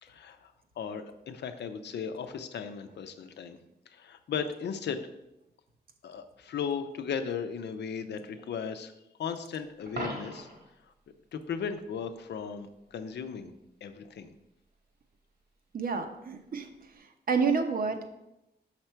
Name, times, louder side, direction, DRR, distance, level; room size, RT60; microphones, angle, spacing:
voice 1, 0.0-3.6 3.9-5.0 6.0-8.9 9.2-10.5 11.3-13.5 13.8-14.3, left 6 dB, 85° left, 8 dB, 0.6 m, -36 dB
Coin (dropping), 9.9-10.7 16.8-17.0, right 1 dB, 75° right, 1.8 m, -38 dB
voice 2, 15.7-16.7 16.9-18.1, right 5 dB, 60° right, 6 dB, 0.8 m, -29 dB
5.9 x 5.8 x 4.5 m, 0.89 s
wide cardioid pair, 120°, 17 cm